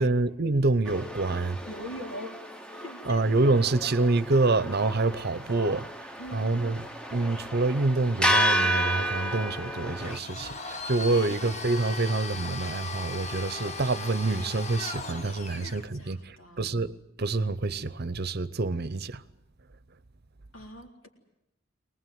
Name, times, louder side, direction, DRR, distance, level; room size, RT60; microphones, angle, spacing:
voice 1, 0.0-1.6 3.1-5.8 6.3-6.8 7.1-16.9 17.2-19.2, right 3 dB, 55° right, 0.8 m, -27 dB
sound 1, 0.9-10.2, equal, 5° left, 1.0 m, -31 dB
voice 2, 1.6-3.3 3.6-3.8 5.4-5.8 6.2-6.7 11.1-11.4 15.5-16.8 20.5-21.1, left 1 dB, 80° left, 3.9 m, -43 dB
Domestic sounds home sounds, 10.0-15.9, left 3 dB, 35° left, 1.2 m, -38 dB
23.5 x 19.5 x 9.4 m
head